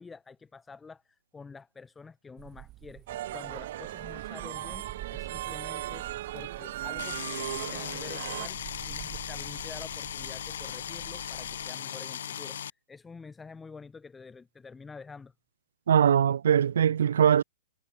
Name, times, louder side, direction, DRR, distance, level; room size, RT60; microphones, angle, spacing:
voice 1, 0.0-3.1 3.3-6.1 6.3-8.6 8.9-15.3, left 4 dB, 10° left, 2.6 m, -48 dB
sound 1, 2.4-11.7, right 16 dB, 25° right, 2.2 m, -47 dB
sound 2, 3.1-8.5, right 14 dB, 55° right, 1.3 m, -37 dB
sound 3, 7.0-12.7, left 9 dB, 75° left, 1.5 m, -38 dB
voice 2, 15.9-17.4, right 8 dB, 80° right, 0.4 m, -21 dB
hypercardioid pair, 155°, 0 cm